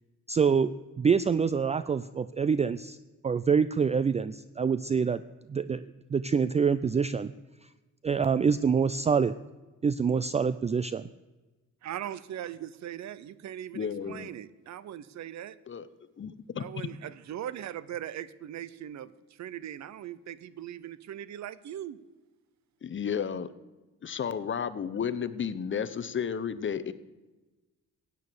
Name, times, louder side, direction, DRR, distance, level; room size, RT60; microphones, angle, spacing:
voice 1, 0.3-0.7 1.0-3.0 3.2-5.2 5.5-7.3 8.0-9.3 9.8-11.1, right 6 dB, 20° right, 15 dB, 0.4 m, -26 dB
voice 2, 11.8-15.5 16.6-19.1 19.4-22.0, right 11 dB, 65° right, 17 dB, 0.8 m, -40 dB
voice 3, 13.7-14.3 15.7-15.9 16.2-16.3 16.6-16.7 22.8-23.5 24.0-26.9, left 7 dB, 40° left, 14 dB, 0.9 m, -32 dB
15.0 x 9.3 x 6.9 m, 1.2 s
cardioid pair, 90°, 30 cm